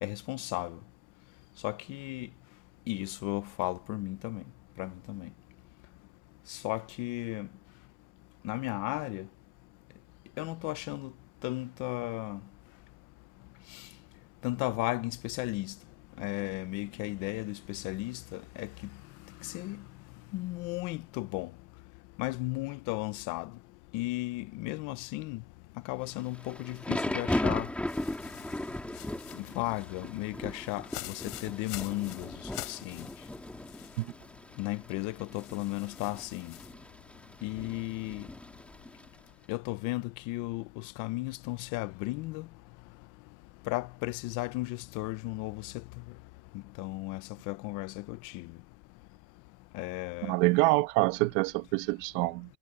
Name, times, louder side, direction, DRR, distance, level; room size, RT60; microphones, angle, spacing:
voice 1, 0.0-0.8 1.6-2.3 2.9-4.4 4.8-5.3 6.5-7.5 8.4-9.3 10.4-11.1 11.4-12.4 13.7-13.8 14.4-15.7 16.2-18.7 19.4-19.8 20.3-21.5 22.2-23.5 23.9-25.4 25.8-27.7 29.4-32.3 32.7-33.1 34.6-36.5 37.4-38.3 39.5-42.5 43.7-45.8 46.8-48.5 49.7-50.3, left 21 dB, 40° left, 0.7 m, -35 dB
Thunder / Rain, 26.1-39.2, left 1 dB, 5° left, 1.7 m, -38 dB
sound 1, 27.9-34.1 34.5-34.6 35.3-36.7, left 22 dB, 85° left, 4.2 m, -46 dB
voice 2, 50.2-52.6, right 22 dB, 55° right, 1.2 m, -26 dB
cardioid pair, 160°, 46 cm